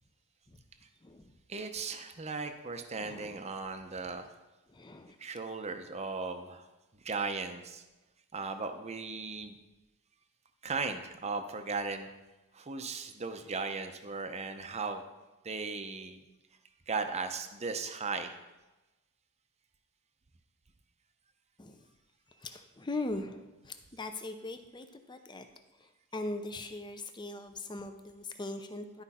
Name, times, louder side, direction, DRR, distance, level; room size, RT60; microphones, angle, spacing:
voice 1, 1.5-4.3 5.2-6.7 7.0-7.8 8.3-9.6 10.6-12.1 12.5-15.0 15.4-16.2 16.9-18.4, right 4 dB, 30° right, 7 dB, 0.7 m, -37 dB
voice 2, 3.0-3.4 4.7-5.2 21.6-21.8 22.4-25.5 25.8-29.0, left 2 dB, 20° left, 8 dB, 0.6 m, -40 dB
12.0 x 5.1 x 4.2 m, 1.1 s
head